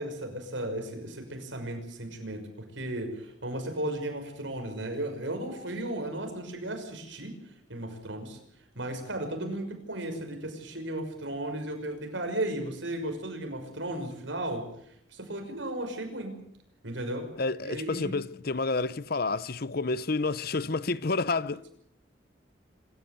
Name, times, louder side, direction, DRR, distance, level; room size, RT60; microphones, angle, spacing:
voice 1, 0.0-2.5 2.7-7.4 7.7-8.4 8.8-14.7 15.1-16.4 16.8-17.3 17.6-18.2, right 1 dB, 70° right, 6.1 m, -35 dB
voice 2, 17.4-21.6, left 3 dB, 50° left, 0.8 m, -29 dB
26.5 x 13.5 x 9.3 m
head